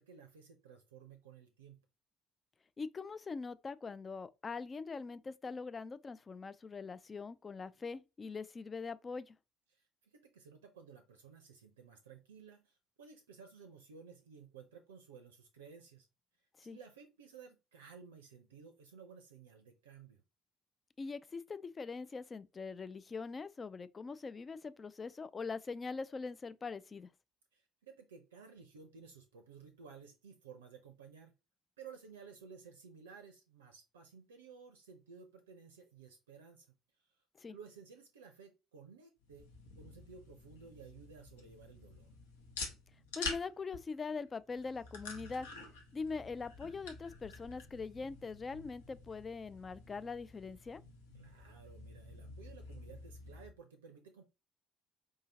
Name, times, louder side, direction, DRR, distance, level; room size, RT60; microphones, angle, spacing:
voice 1, 0.0-1.8 9.7-16.1 16.6-20.2 27.5-31.3 31.8-36.7 37.5-39.5 39.8-42.1 51.1-54.2, right 6 dB, 75° right, 0.5 m, -55 dB
voice 2, 2.8-9.3 16.6-16.8 21.0-27.1 37.4-37.6 43.1-45.5 45.9-50.8, left 4 dB, 30° left, 0.3 m, -42 dB
sound 1, 39.2-53.5, left 4 dB, 70° left, 0.8 m, -49 dB
4.8 x 2.7 x 2.7 m
figure-of-eight pair, 55°, 0 cm